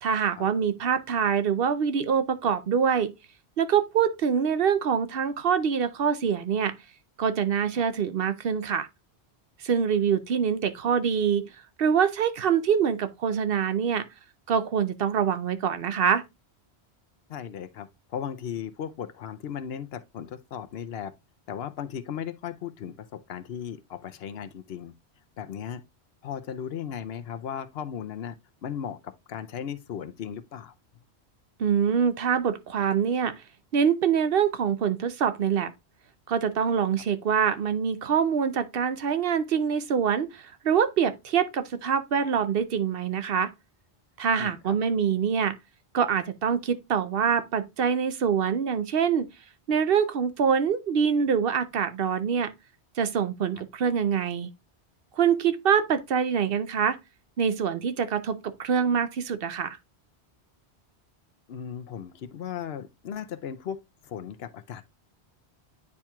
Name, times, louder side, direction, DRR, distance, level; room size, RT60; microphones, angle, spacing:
voice 1, 0.0-3.1 3.6-6.7 7.2-8.9 9.6-11.5 11.8-14.0 14.5-16.2 31.6-33.3 33.7-35.7 36.3-43.5 44.2-45.5 45.9-49.3 49.7-52.5 53.0-54.5 55.2-57.0 57.4-59.8, right 7 dB, 65° right, 0.8 m, -25 dB
voice 2, 17.3-21.1 21.5-24.9 25.4-25.8 26.2-28.4 28.6-30.7 44.4-44.8 61.5-64.8, left 8 dB, 70° left, 0.8 m, -36 dB
9.7 x 4.3 x 2.3 m
omnidirectional pair, 1.1 m